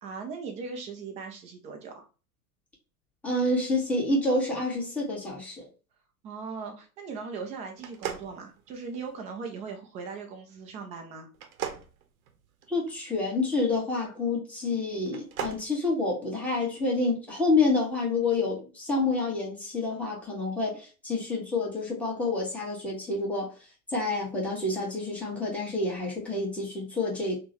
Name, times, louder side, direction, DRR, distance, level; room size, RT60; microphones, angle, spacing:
voice 1, 0.0-2.0 6.2-11.3, right 5 dB, 20° right, 0.3 m, -39 dB
voice 2, 3.2-5.7 12.7-23.5 23.9-27.4, left 3 dB, 5° left, 1.2 m, -28 dB
sound 1, 7.8-9.1 11.3-12.9 15.0-15.7, right 9 dB, 65° right, 0.8 m, -37 dB
3.6 x 2.2 x 2.8 m
hypercardioid pair, 100°, 45 cm